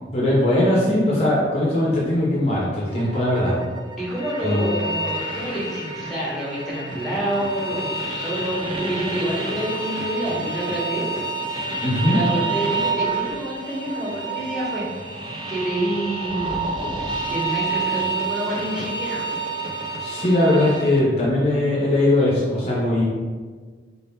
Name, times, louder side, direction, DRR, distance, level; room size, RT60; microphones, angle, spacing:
voice 1, 0.1-3.6 4.4-4.7 11.8-12.2 20.0-23.0, left 1 dB, 35° left, -6 dB, 0.7 m, -20 dB
sound 1, 2.9-21.0, right 3 dB, 25° right, 0.4 m, -29 dB
voice 2, 3.9-11.1 11.5-11.8 12.1-14.9 15.5-16.5 17.3-19.3, right 1 dB, ahead, -7 dB, 1.1 m, -27 dB
4.0 x 2.8 x 3.5 m, 1.5 s
head